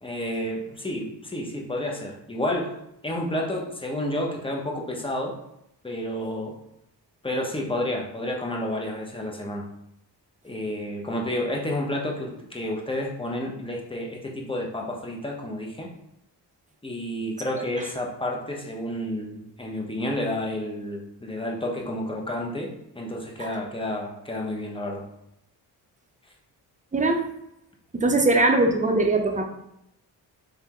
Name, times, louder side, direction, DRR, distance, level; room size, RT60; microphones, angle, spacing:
voice 1, 0.0-2.7 3.0-5.3 5.8-6.6 7.2-9.6 10.4-15.9 16.8-25.0, left 1 dB, 10° left, 0 dB, 0.9 m, -30 dB
voice 2, 26.9-27.2 27.9-29.4, right 2 dB, 15° right, 3 dB, 0.7 m, -21 dB
3.5 x 3.3 x 3.0 m, 0.80 s
cardioid pair, 65°, 44 cm